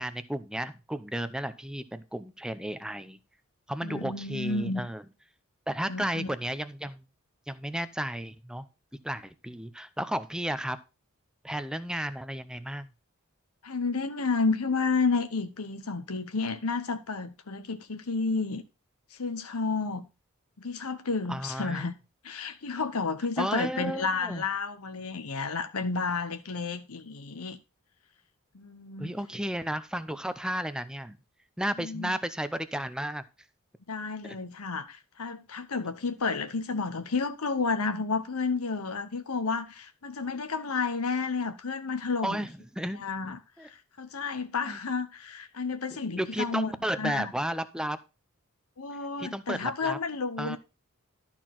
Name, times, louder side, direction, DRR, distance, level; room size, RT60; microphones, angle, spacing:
voice 1, 0.0-3.2 3.7-5.0 5.7-7.0 7.5-8.7 9.0-10.8 11.4-12.9 21.3-21.9 23.4-24.4 29.0-31.2 31.6-33.2 34.2-34.4 42.2-43.0 43.6-43.7 44.6-44.8 46.2-48.0 49.2-50.0 50.4-50.6, right 1 dB, 5° right, 0.6 m, -33 dB
voice 2, 3.8-4.8 5.9-6.3 13.6-18.6 19.1-20.0 20.6-21.9 22.2-27.6 28.5-29.1 31.8-32.1 33.9-42.4 43.0-47.3 48.8-50.6, left 4 dB, 80° left, 1.0 m, -31 dB
12.5 x 4.4 x 5.9 m
head